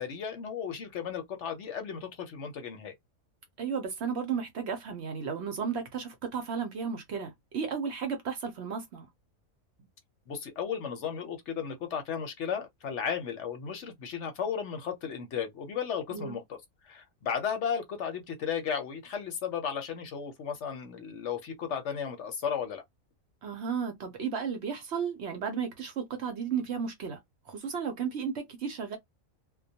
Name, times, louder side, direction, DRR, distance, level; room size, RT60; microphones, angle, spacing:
voice 1, 0.0-2.9 10.3-16.6 16.8-22.8, left 7 dB, 65° left, 0.9 m, -34 dB
voice 2, 3.6-9.1 16.1-16.4 23.4-27.2 27.5-29.0, right 6 dB, 60° right, 0.8 m, -34 dB
2.2 x 2.1 x 2.7 m
omnidirectional pair, 1.4 m